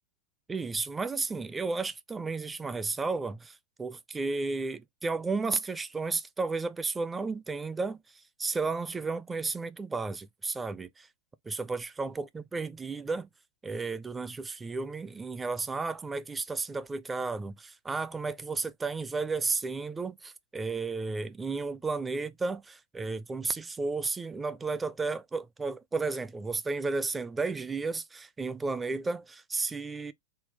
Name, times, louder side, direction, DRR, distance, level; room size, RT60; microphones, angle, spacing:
voice 1, 0.5-11.1 11.4-13.3 13.6-30.1, right 3 dB, 10° right, 0.4 m, -33 dB
3.8 x 2.2 x 3.8 m
figure-of-eight pair, 90°, 0 cm